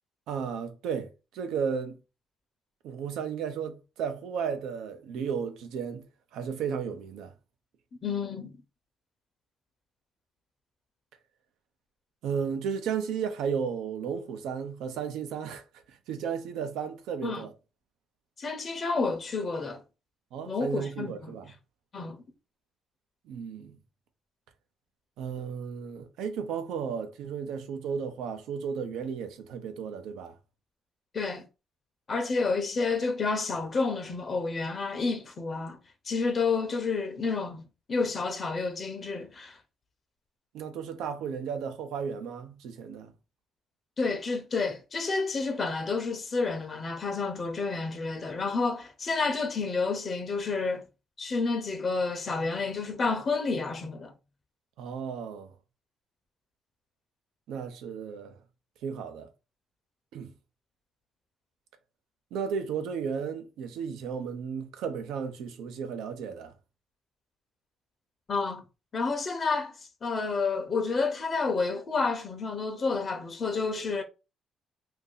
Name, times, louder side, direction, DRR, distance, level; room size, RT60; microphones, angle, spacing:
voice 1, 0.3-2.0 2.8-6.1 6.3-7.3 12.2-17.5 20.3-21.5 23.3-23.8 25.2-30.3 40.5-43.1 54.8-55.5 57.5-58.4 58.8-59.3 60.1-60.3 62.3-66.5, right 6 dB, 90° right, 0.6 m, -34 dB
voice 2, 8.0-8.5 17.2-17.4 18.4-19.8 20.5-21.3 21.9-22.2 31.1-31.4 32.1-35.8 36.0-37.6 37.9-39.6 44.0-50.8 51.2-54.1 68.3-68.6 68.9-69.7 70.0-74.0, left 4 dB, 45° left, 0.7 m, -30 dB
2.8 x 2.7 x 3.8 m
cardioid pair, 90°, 0 cm